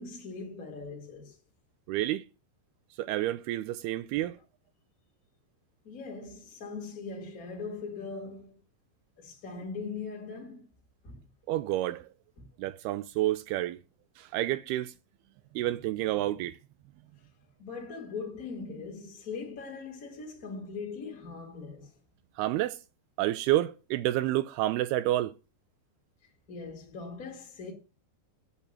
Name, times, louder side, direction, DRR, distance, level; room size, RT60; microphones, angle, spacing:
voice 1, 0.0-1.4 5.8-8.6 9.2-10.6 11.0-11.2 12.4-12.5 17.6-21.9 26.5-27.7, left 4 dB, 30° left, 1.9 m, -40 dB
voice 2, 1.9-2.2 3.0-4.4 11.5-12.1 12.6-13.8 14.2-14.9 15.6-16.6 22.4-22.8 23.2-25.3, right 15 dB, 85° right, 2.6 m, -29 dB
8.4 x 8.2 x 7.4 m
omnidirectional pair, 4.5 m